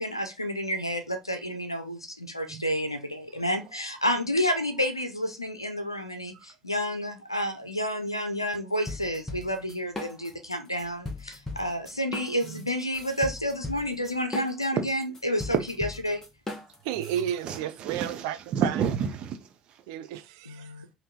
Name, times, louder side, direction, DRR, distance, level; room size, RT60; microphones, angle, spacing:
voice 1, 0.0-16.2 20.5-20.9, equal, 90° left, 0.5 m, -30 dB
sound 1, 8.9-10.5 10.8-17.6, left 2 dB, 20° left, 1.0 m, -38 dB
voice 2, 16.8-18.4 18.6-18.7 19.9-20.7, right 10 dB, 65° right, 0.4 m, -32 dB
voice 3, 17.4-19.8, right 7 dB, 45° right, 0.9 m, -30 dB
3.5 x 2.6 x 3.8 m
figure-of-eight pair, 60°, 2 cm